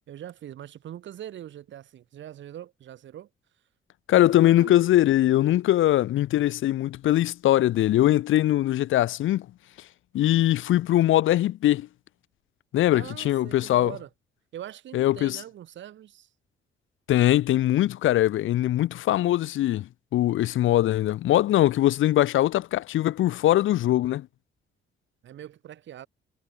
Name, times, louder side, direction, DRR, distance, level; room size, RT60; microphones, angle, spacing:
voice 1, 0.1-3.3 4.1-4.8 12.9-14.1 14.5-16.3 25.2-26.1, right 11 dB, 65° right, 7.0 m, -42 dB
voice 2, 4.1-9.5 10.1-11.9 12.7-13.9 14.9-15.4 17.1-24.3, left 14 dB, 75° left, 1.0 m, -22 dB
cardioid pair, 170°, 21 cm